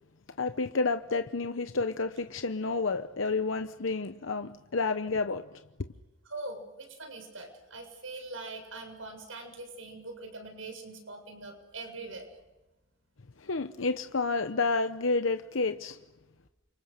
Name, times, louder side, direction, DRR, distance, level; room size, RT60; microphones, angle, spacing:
voice 1, 0.4-5.5 13.4-16.0, left 3 dB, 75° left, 0.9 m, -30 dB
voice 2, 6.2-12.3, right 2 dB, 80° right, 7.4 m, -42 dB
30.0 x 27.0 x 6.7 m
head